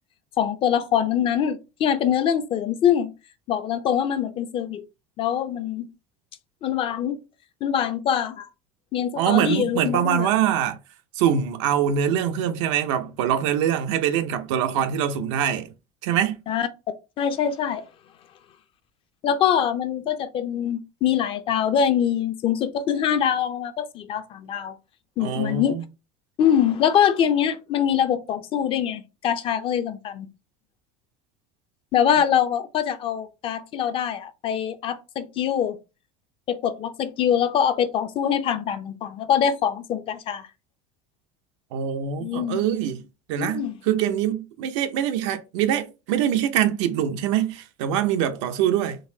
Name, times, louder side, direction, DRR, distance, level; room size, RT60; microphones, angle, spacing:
voice 1, 0.4-3.1 3.5-4.8 5.2-5.9 6.6-7.2 7.6-8.5 8.9-10.3 16.5-16.7 17.2-17.8 19.2-24.8 25.2-25.8 26.4-30.3 31.9-35.8 36.5-40.5 42.2-42.6 43.4-43.8, left 9 dB, 35° left, 0.5 m, -24 dB
voice 2, 9.2-10.8 11.2-15.7 16.0-16.4 25.2-25.8 41.7-49.0, right 9 dB, 90° right, 0.6 m, -24 dB
3.9 x 2.6 x 2.7 m
cardioid pair, 145°, 15 cm